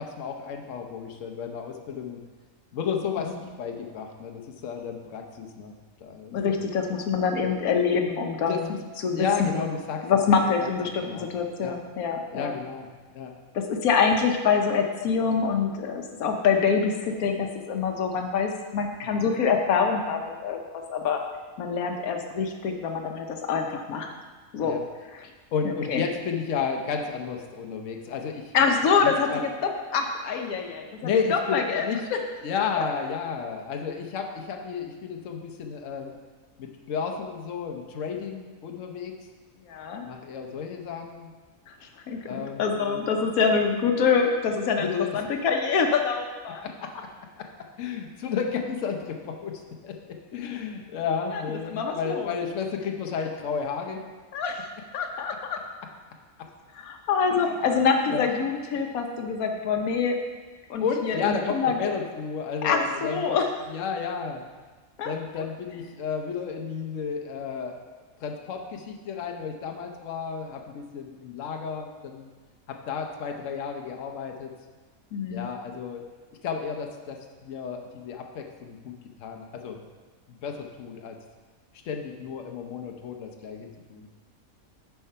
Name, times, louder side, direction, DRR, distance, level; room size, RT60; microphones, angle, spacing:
voice 1, 0.0-2.2 2.7-5.7 6.0-6.7 8.5-8.8 9.1-10.2 10.6-10.7 11.0-11.3 11.6-11.7 12.3-12.9 13.1-13.3 19.0-19.3 24.6-24.8 25.5-28.5 29.3-29.4 31.0-32.0 32.4-36.2 36.6-39.1 40.0-41.3 42.2-43.0 44.8-45.2 46.6-46.9 47.4-54.0 56.4-56.5 57.3-57.4 58.1-58.3 60.8-63.4 63.7-64.4 65.0-67.8 68.2-72.3 72.7-74.5 75.3-76.0 76.4-78.9 79.2-79.8 80.4-81.2 81.8-84.1, left 6 dB, 65° left, 3 dB, 1.1 m, -32 dB
voice 2, 6.3-8.7 9.0-9.3 9.5-9.7 10.0-12.5 13.5-20.6 20.9-21.2 21.6-24.1 24.5-24.7 25.1-25.3 25.6-26.0 28.5-31.9 39.7-40.0 41.7-46.6 51.3-51.4 51.7-52.3 54.3-54.7 54.9-55.6 56.7-60.2 60.7-61.8 62.6-63.5 65.0-65.5 75.1-75.5, left 5 dB, 85° left, 4 dB, 1.2 m, -25 dB
9.2 x 4.6 x 5.5 m, 1.4 s
omnidirectional pair, 1.5 m